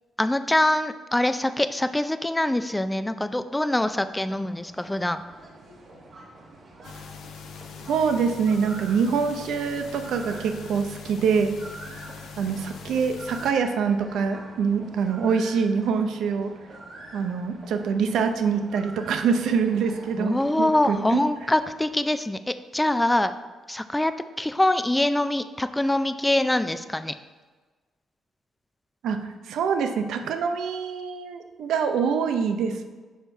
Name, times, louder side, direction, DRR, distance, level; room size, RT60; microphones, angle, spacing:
voice 1, 0.2-5.2 20.2-23.3 23.7-24.1 24.4-27.2, left 1 dB, 10° left, 11 dB, 0.4 m, -24 dB
sound 1, 3.6-22.0, right 2 dB, 45° right, 1.2 m, -46 dB
sound 2, 6.8-13.5, left 7 dB, 75° left, 0.7 m, -42 dB
voice 2, 7.9-11.5 12.4-16.5 17.1-21.2 29.0-29.2 29.5-32.8, right 6 dB, 75° right, 7 dB, 0.6 m, -25 dB
6.4 x 5.3 x 4.5 m, 1.3 s
cardioid pair, 90°, 0 cm